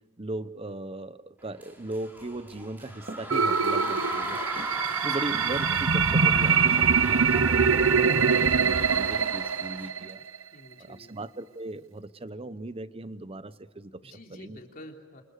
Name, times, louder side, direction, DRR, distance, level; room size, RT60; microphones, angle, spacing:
voice 1, 0.2-4.4 5.0-7.6 8.0-10.2 10.8-14.6, right 2 dB, 30° right, 14 dB, 0.9 m, -38 dB
sound 1, 1.6-9.9, equal, 10° right, 4.4 m, -37 dB
sound 2, 3.0-3.3 3.7-4.1 4.6-4.8 5.3-5.6 6.0-7.1 7.6-7.8 8.2-8.6 9.2-9.4 10.0-10.3, right 1 dB, 50° right, 2.9 m, -44 dB
sound 3, 3.3-10.4, right 6 dB, 90° right, 0.9 m, -23 dB
voice 2, 3.7-4.4 4.9-5.2 7.0-8.3 10.5-11.1 14.0-15.2, left 1 dB, 45° left, 2 dB, 3.2 m, -49 dB
28.0 x 27.0 x 6.6 m, 1.4 s
head